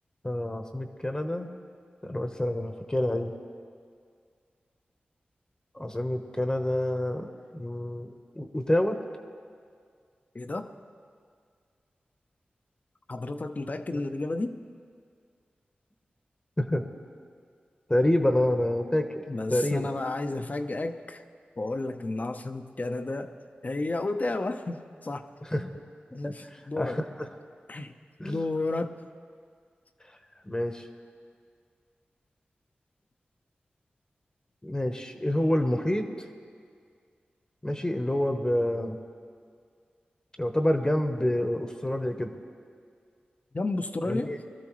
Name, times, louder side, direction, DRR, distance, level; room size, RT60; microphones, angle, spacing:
voice 1, 0.2-1.5 2.0-3.3 5.7-7.3 7.5-9.0 13.9-14.0 16.6-16.9 17.9-19.2 19.5-19.9 25.4-25.8 26.2-26.3 26.8-27.3 28.2-28.4 30.5-30.8 34.6-36.1 37.6-39.0 40.4-42.3 44.0-44.4, left 1 dB, 20° left, 6 dB, 1.0 m, -27 dB
voice 2, 10.3-10.7 13.1-14.6 19.3-21.2 21.6-23.3 23.6-25.3 25.6-25.7 26.1-27.0 27.7-27.9 28.3-29.0 43.5-44.3, left 2 dB, 45° left, 8 dB, 0.7 m, -32 dB
22.0 x 13.0 x 3.1 m, 2.1 s
cardioid pair, 40°, 4 cm